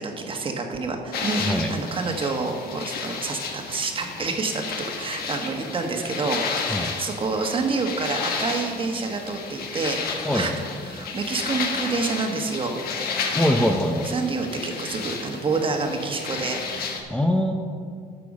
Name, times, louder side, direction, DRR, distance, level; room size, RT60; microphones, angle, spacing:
voice 1, 0.0-4.6 5.0-10.5 10.8-12.8 14.0-17.0, right 3 dB, 30° right, 3 dB, 1.3 m, -28 dB
sound 1, 1.1-17.0, left 5 dB, 65° left, 1.3 m, -32 dB
voice 2, 13.3-14.2 17.1-17.5, equal, 5° left, 2 dB, 0.6 m, -22 dB
11.0 x 6.7 x 5.3 m, 2.3 s
cardioid pair, 110°, 17 cm